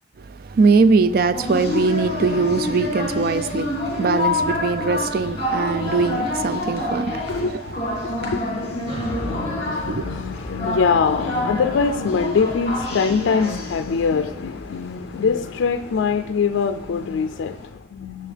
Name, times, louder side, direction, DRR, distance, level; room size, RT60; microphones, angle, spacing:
voice 1, 0.2-8.4 9.9-10.1, right 4 dB, 50° right, 0.3 m, -21 dB
sound 1, 1.3-17.6, left 2 dB, 35° left, 1.9 m, -28 dB
voice 2, 7.3-18.3, left 5 dB, 85° left, 0.4 m, -24 dB
sound 2, 8.8-17.1, left 1 dB, 90° right, 3.0 m, -38 dB
9.8 x 6.9 x 3.4 m
head